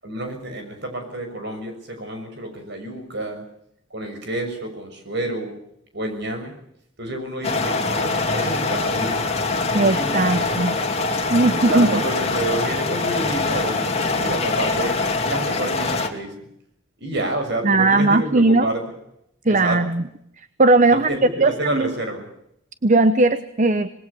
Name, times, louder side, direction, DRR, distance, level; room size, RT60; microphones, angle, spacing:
voice 1, 0.0-3.4 3.9-5.6 5.9-6.5 7.0-9.4 9.7-10.8 11.5-15.0 15.2-16.5 17.0-18.8 19.5-19.8 20.9-22.3, right 1 dB, 55° right, 6 dB, 6.6 m, -29 dB
sound 1, 7.4-16.1, left 3 dB, 30° left, 2.6 m, -23 dB
voice 2, 9.7-10.8 11.3-12.0 17.6-18.7 19.4-20.0 20.6-21.1 21.4-21.9 22.8-23.9, right 2 dB, 40° right, 12 dB, 0.9 m, -18 dB
26.5 x 20.5 x 7.0 m, 0.74 s
head